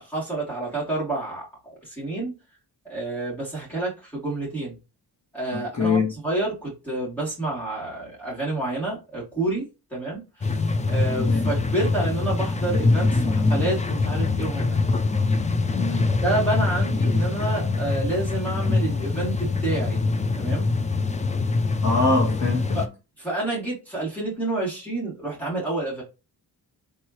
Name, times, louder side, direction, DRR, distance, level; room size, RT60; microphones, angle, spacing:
voice 1, 0.0-2.3 2.9-4.8 5.3-10.6 10.9-14.8 16.2-20.0 20.4-20.7 22.7-22.9 23.2-26.0, right 2 dB, 5° left, 2.6 m, -29 dB
voice 2, 5.5-6.1 11.3-11.5 15.8-16.1 21.8-22.8, left 3 dB, 40° left, 1.4 m, -23 dB
sound 1, 10.4-22.9, left 3 dB, 20° left, 0.3 m, -24 dB
4.6 x 3.6 x 3.0 m
wide cardioid pair, 170°, 42 cm